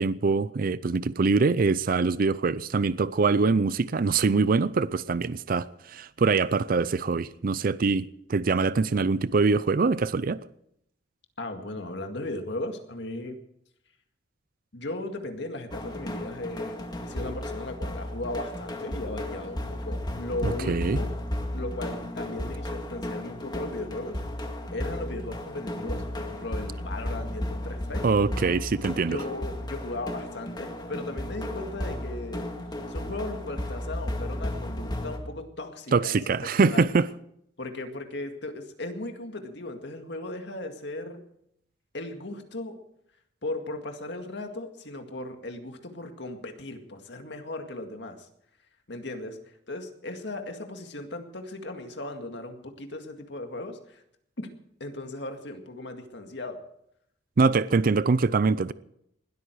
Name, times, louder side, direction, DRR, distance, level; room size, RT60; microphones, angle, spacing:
voice 1, 0.0-10.4 20.4-21.0 28.0-29.2 35.9-37.1 57.4-58.7, right 4 dB, 50° right, 0.5 m, -24 dB
voice 2, 11.4-13.4 14.7-21.1 21.5-24.2 24.7-28.0 29.1-32.5 32.9-36.9 37.6-41.2 41.9-42.8 43.4-48.3 48.9-49.4 49.7-54.0 54.4-54.5 54.8-56.6, left 2 dB, 65° left, 2.0 m, -37 dB
sound 1, 15.7-35.2, left 1 dB, 25° left, 2.0 m, -34 dB
20.0 x 13.0 x 4.7 m
head